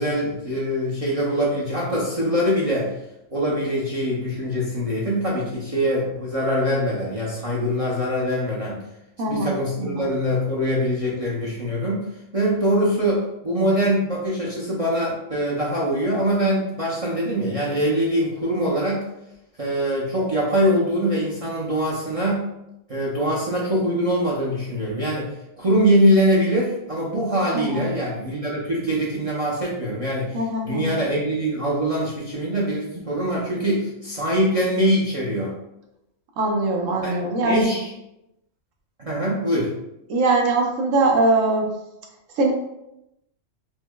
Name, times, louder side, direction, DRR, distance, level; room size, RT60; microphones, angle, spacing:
voice 1, 0.0-2.9 3.3-8.8 9.3-12.0 12.3-19.0 19.6-22.4 22.9-25.3 25.6-35.5 37.0-37.1 37.4-37.9 39.0-39.7, equal, 40° right, -5 dB, 0.5 m, -23 dB
voice 2, 9.2-10.1 13.6-13.7 27.5-27.9 30.3-31.0 36.4-37.7 40.1-41.8 42.4-42.5, right 2 dB, 85° right, 1 dB, 1.1 m, -22 dB
5.2 x 2.1 x 2.2 m, 0.86 s
omnidirectional pair, 1.3 m